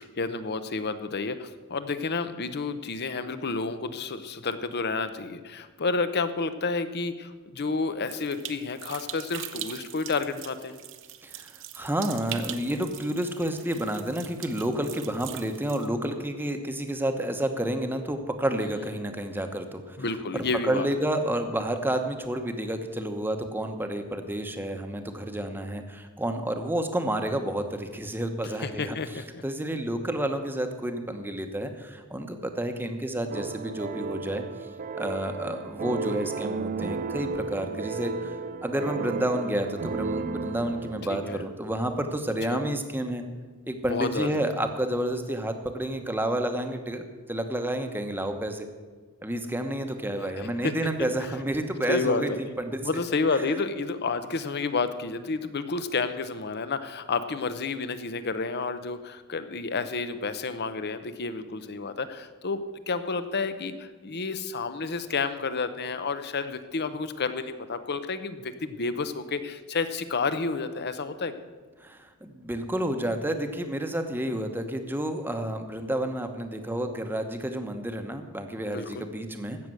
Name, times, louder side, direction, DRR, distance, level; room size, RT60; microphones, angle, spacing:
voice 1, 0.0-10.8 20.0-20.9 28.6-29.4 41.1-41.4 42.5-42.6 43.8-44.4 50.3-50.7 51.9-52.4 52.8-71.4 78.7-79.1, left 4 dB, 50° left, 11 dB, 0.8 m, -30 dB
sound 1, 8.1-15.9, right 11 dB, 60° right, 0.8 m, -42 dB
voice 2, 11.2-20.0 20.3-34.4 35.0-38.4 38.6-43.2 43.7-48.7 49.2-52.3 52.6-52.8 71.8-79.6, right 1 dB, 10° right, 6 dB, 1.0 m, -30 dB
sound 2, 33.3-42.3, right 4 dB, 35° right, 0.4 m, -34 dB
15.5 x 6.7 x 7.7 m, 1.4 s
head